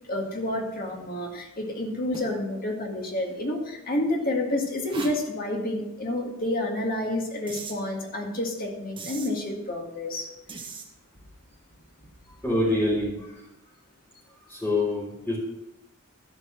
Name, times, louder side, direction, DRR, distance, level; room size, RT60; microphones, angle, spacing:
voice 1, 0.1-10.3, left 1 dB, 45° left, 1 dB, 2.0 m, -29 dB
sound 1, 2.1-2.4 3.2-3.3 4.9-5.2 7.5-7.8 9.0-9.3 10.5-10.8, right 4 dB, 25° right, 1.3 m, -39 dB
voice 2, 12.4-13.4 14.5-15.4, left 1 dB, 10° left, -9 dB, 3.4 m, -26 dB
12.5 x 5.3 x 6.3 m, 0.93 s
head